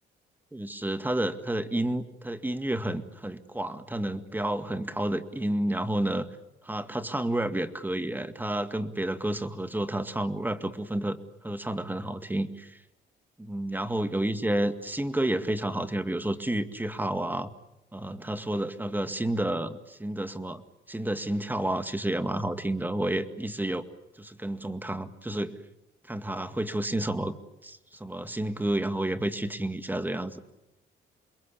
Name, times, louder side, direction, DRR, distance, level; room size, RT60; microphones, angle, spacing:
voice 1, 0.5-6.3 6.6-11.2 11.4-12.8 13.4-17.5 17.9-20.6 20.9-23.9 24.2-25.5 26.1-27.3 27.6-30.4, right 1 dB, 10° right, 10 dB, 2.0 m, -30 dB
28.5 x 22.0 x 8.6 m, 0.95 s
cardioid pair, 90°, 20 cm